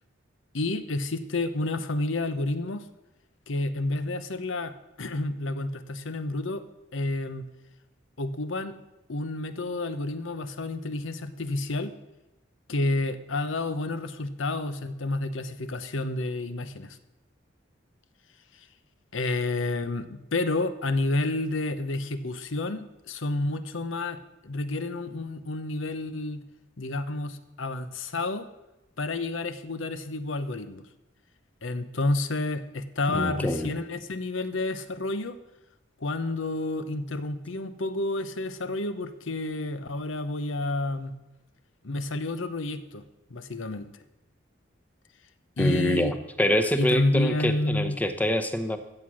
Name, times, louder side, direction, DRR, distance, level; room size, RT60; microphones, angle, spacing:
voice 1, 0.5-2.8 3.5-6.6 6.9-7.5 8.2-8.8 9.1-11.9 12.7-17.0 18.6-18.7 19.1-26.4 26.8-28.5 29.0-30.9 31.6-35.4 36.0-41.1 41.8-43.0 43.3-43.9 45.6-46.2 46.8-48.0, left 2 dB, 70° left, 12 dB, 0.8 m, -30 dB
voice 2, 33.1-33.7 45.6-48.8, equal, 10° left, 8 dB, 0.8 m, -26 dB
14.5 x 7.7 x 6.3 m, 0.98 s
head